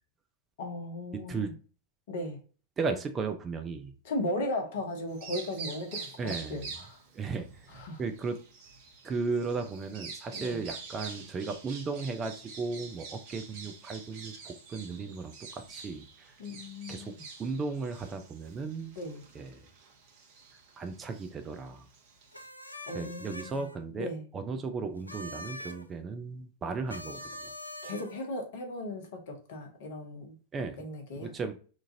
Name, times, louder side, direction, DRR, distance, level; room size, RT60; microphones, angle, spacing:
voice 1, 0.6-1.5 2.1-2.4 4.0-7.0 7.7-8.0 10.3-10.6 16.4-17.2 19.0-19.2 22.9-23.7 23.9-24.2 27.8-30.4 30.8-31.3, left 1 dB, 55° left, 0.9 m, -37 dB
voice 2, 2.8-3.9 6.2-6.7 7.1-7.5 8.0-8.4 9.0-16.3 16.9-17.1 17.4-19.0 19.3-19.6 20.8-21.8 22.9-24.1 24.3-27.5 30.5-30.8 31.1-31.6, right 4 dB, 20° right, 0.4 m, -35 dB
Bird vocalization bird call bird song, 5.1-22.5, right 5 dB, 45° right, 0.9 m, -47 dB
sound 1, 22.3-23.8 25.0-25.8 26.9-28.3, left 1 dB, 85° left, 0.4 m, -44 dB
3.0 x 2.4 x 2.7 m
figure-of-eight pair, 90°, 0 cm